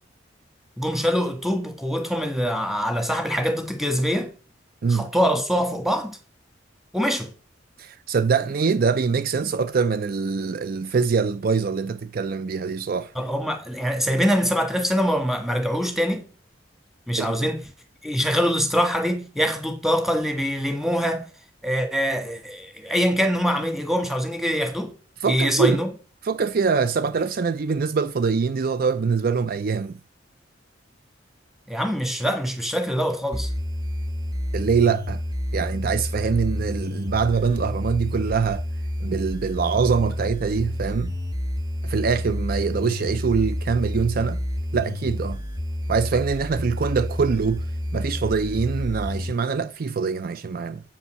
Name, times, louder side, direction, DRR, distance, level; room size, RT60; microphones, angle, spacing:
voice 1, 0.8-4.3 4.9-6.2 6.9-7.3 13.1-16.3 17.1-17.6 18.0-21.3 21.6-24.9 25.2-25.9 31.7-33.5, equal, ahead, 1.6 m, -24 dB
voice 2, 7.8-13.1 17.2-17.5 25.2-25.8 26.2-30.0 34.5-35.2 35.5-38.6 39.0-41.1 41.8-44.4 44.7-45.4 45.9-47.6 47.9-50.8, right 5 dB, 50° right, 0.4 m, -24 dB
sound 1, 33.3-49.3, left 1 dB, 20° right, 1.2 m, -29 dB
8.4 x 5.5 x 6.3 m
head